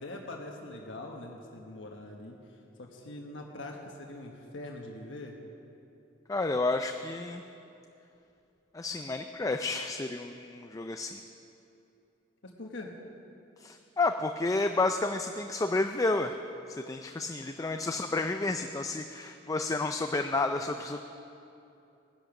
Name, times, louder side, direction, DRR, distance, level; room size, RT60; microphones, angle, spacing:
voice 1, 0.0-5.4 12.4-12.9, left 2 dB, 80° left, 1 dB, 1.3 m, -43 dB
voice 2, 6.3-7.4 8.7-11.2 13.6-16.4 16.7-21.0, left 3 dB, 20° left, 6 dB, 0.4 m, -31 dB
18.0 x 10.5 x 6.0 m, 2.8 s
head